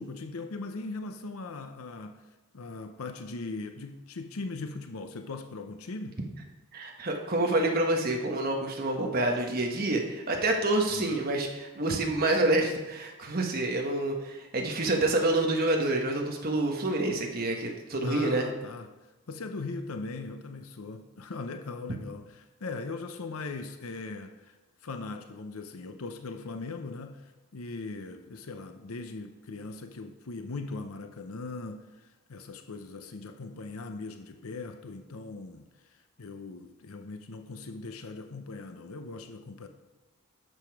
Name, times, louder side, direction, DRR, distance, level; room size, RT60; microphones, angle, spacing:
voice 1, 0.0-2.2 2.5-6.2 10.9-11.2 18.0-18.9 19.3-24.5 24.8-39.7, left 3 dB, 75° left, 0.7 m, -40 dB
voice 2, 6.7-18.5, right 2 dB, 40° right, 1.3 m, -27 dB
11.0 x 6.9 x 4.7 m
head